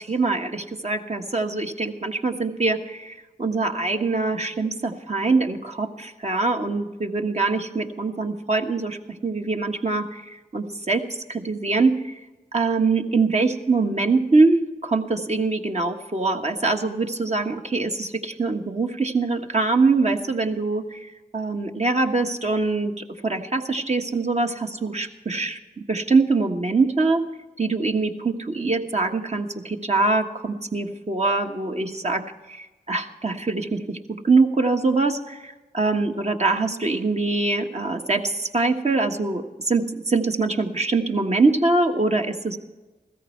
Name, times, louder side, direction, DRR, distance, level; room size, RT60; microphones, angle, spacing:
voice 1, 0.0-9.0 9.2-12.2 12.5-27.2 27.6-32.2 32.5-42.6, right 3 dB, 40° right, 4 dB, 1.4 m, -23 dB
15.5 x 14.0 x 4.6 m, 1.1 s
cardioid pair, 45°, 17 cm